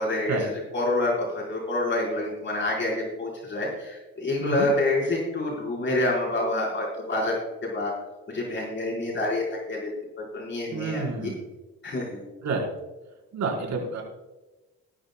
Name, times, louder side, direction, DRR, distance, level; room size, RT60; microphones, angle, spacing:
voice 1, 0.0-7.4 7.6-7.9 8.3-9.9 10.2-11.3 11.8-12.2, left 2 dB, 40° left, -3 dB, 4.8 m, -27 dB
voice 2, 10.7-11.4 12.4-12.7 13.3-14.0, right 4 dB, 65° right, -1 dB, 4.6 m, -29 dB
19.5 x 12.5 x 2.3 m, 1.1 s
cardioid pair, 90°, 30 cm